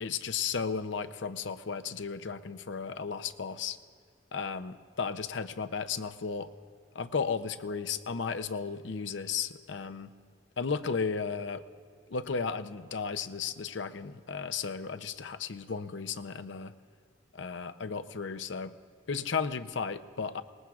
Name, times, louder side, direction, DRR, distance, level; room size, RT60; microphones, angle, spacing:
voice 1, 0.0-3.8 4.3-6.5 6.9-10.1 10.6-11.6 12.1-16.7 17.3-18.7 19.1-20.4, left 5 dB, 70° left, 10 dB, 0.6 m, -34 dB
26.0 x 20.0 x 2.4 m, 2.2 s
head